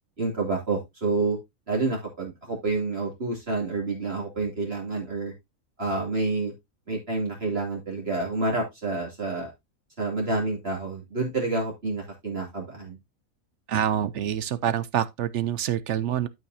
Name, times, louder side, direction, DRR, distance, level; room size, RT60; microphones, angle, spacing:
voice 1, 0.2-1.4 1.7-5.3 5.8-6.5 6.9-9.5 10.0-13.0, right 3 dB, 45° right, 2.8 m, -28 dB
voice 2, 13.7-16.3, right 10 dB, 65° right, 0.9 m, -26 dB
12.5 x 5.7 x 2.6 m
omnidirectional pair, 1.4 m